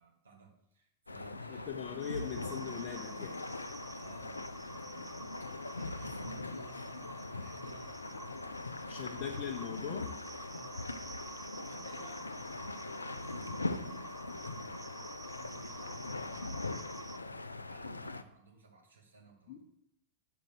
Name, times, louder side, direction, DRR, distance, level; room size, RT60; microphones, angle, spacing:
voice 1, 0.0-2.8 3.9-8.6 10.5-15.0 15.4-19.6, right 3 dB, 75° right, 0 dB, 1.8 m, -57 dB
sound 1, 1.1-18.2, left 2 dB, 80° left, 0.4 m, -41 dB
voice 2, 1.5-3.4 8.9-10.1 19.5-19.6, left 8 dB, 45° left, 1 dB, 0.8 m, -40 dB
sound 2, 2.0-17.2, right 5 dB, 20° right, 0.4 m, -51 dB
6.5 x 5.3 x 6.3 m, 0.77 s
figure-of-eight pair, 90°, 0 cm